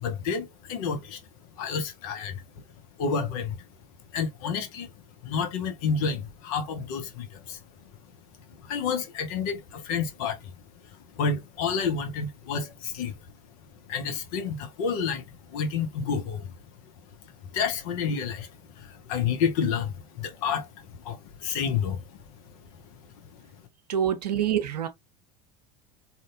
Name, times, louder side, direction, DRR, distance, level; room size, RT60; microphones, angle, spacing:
voice 1, 0.0-1.2 1.6-2.4 3.0-3.6 4.1-4.9 5.2-7.6 8.6-10.5 11.2-13.2 13.9-15.2 15.5-16.5 17.5-18.5 18.8-20.7 21.0-22.0, left 6 dB, 65° left, 0.7 m, -29 dB
voice 2, 23.9-24.9, right 9 dB, 85° right, 0.5 m, -26 dB
2.7 x 2.1 x 2.5 m
hypercardioid pair, 80°, 20 cm